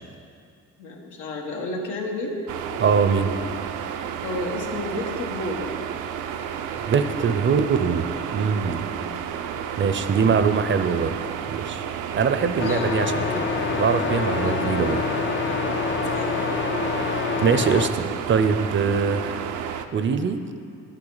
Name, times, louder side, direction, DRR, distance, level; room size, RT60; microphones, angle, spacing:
voice 1, 0.8-2.4 4.2-5.7 8.9-9.3 12.4-12.8 14.4-14.7 15.4-16.5, left 2 dB, 85° left, 0 dB, 1.4 m, -32 dB
sound 1, 2.5-19.8, right 8 dB, 80° right, 0.5 m, -32 dB
voice 2, 2.8-3.3 6.9-8.8 9.8-11.1 11.5-11.8 12.1-13.5 13.7-15.0 17.0-19.5 19.9-20.4, right 6 dB, 40° right, 9 dB, 0.5 m, -22 dB
sound 2, 12.6-17.9, left 6 dB, 40° left, 0.5 m, -26 dB
9.1 x 8.4 x 4.0 m, 2.4 s
cardioid pair, 90°, 30 cm